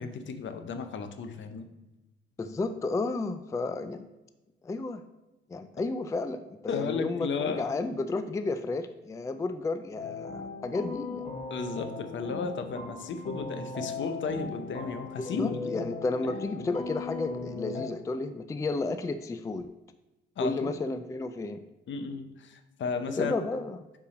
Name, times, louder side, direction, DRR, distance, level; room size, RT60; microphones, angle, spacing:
voice 1, 0.0-1.7 6.7-7.7 11.5-15.8 20.4-20.8 21.9-23.4, left 5 dB, 65° left, 8 dB, 0.8 m, -34 dB
voice 2, 2.4-4.1 4.6-5.0 5.5-11.2 15.2-19.8 20.4-21.6 23.2-23.8, left 3 dB, 15° left, 10 dB, 0.3 m, -32 dB
sound 1, 10.0-17.9, left 4 dB, 30° left, 1.3 m, -38 dB
5.7 x 4.8 x 5.1 m, 1.0 s
cardioid pair, 110°, 21 cm